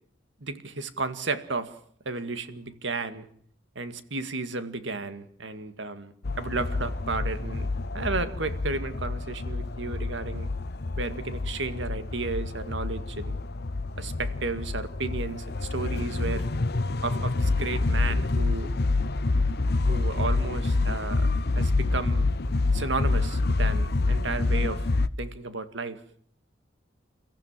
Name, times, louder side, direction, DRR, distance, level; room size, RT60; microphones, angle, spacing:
voice 1, 0.4-1.7 2.1-3.3 3.8-7.7 7.9-10.5 11.0-13.4 14.0-16.4 17.0-18.7 19.9-22.4 22.7-24.9 25.2-26.0, right 3 dB, 70° right, 10 dB, 2.1 m, -33 dB
sound 1, 6.2-25.1, left 3 dB, 60° left, 0.9 m, -27 dB
30.0 x 15.0 x 7.5 m, 0.63 s
head